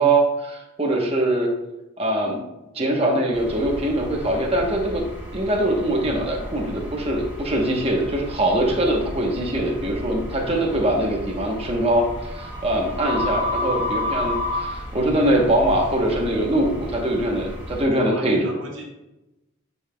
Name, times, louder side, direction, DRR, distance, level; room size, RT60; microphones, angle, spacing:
voice 1, 0.0-1.5 2.0-2.4 2.7-5.0 5.3-18.5, right 1 dB, 30° right, 0 dB, 0.9 m, -22 dB
sound 1, 3.3-17.8, left 1 dB, 10° right, 1.7 m, -32 dB
voice 2, 17.6-18.8, right 1 dB, 70° right, -1 dB, 1.6 m, -37 dB
8.7 x 5.4 x 2.2 m, 0.98 s
head